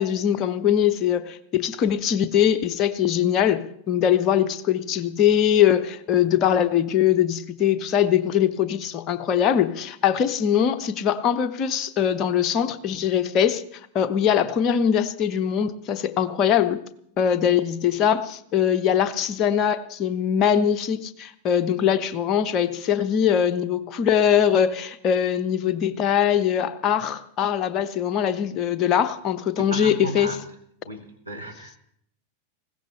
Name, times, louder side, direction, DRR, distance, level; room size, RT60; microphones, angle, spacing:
voice 1, 0.0-13.6 13.9-16.8 17.2-30.3, left 9 dB, 35° left, 11 dB, 0.9 m, -22 dB
voice 2, 29.6-30.4 30.8-31.8, right 3 dB, 90° right, 0 dB, 1.9 m, -34 dB
20.0 x 16.5 x 3.3 m, 0.69 s
figure-of-eight pair, 90°, 0 cm